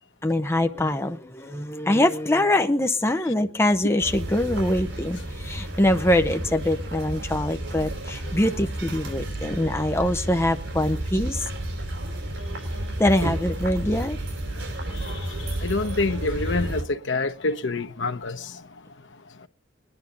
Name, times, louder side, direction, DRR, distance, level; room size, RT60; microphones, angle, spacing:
voice 1, 0.2-11.4 13.0-14.2, left 1 dB, 15° left, 0.7 m, -23 dB
sound 1, 4.0-16.8, right 1 dB, 80° right, 4.5 m, -31 dB
voice 2, 15.6-18.5, left 3 dB, 80° left, 1.0 m, -26 dB
20.5 x 11.0 x 3.9 m
head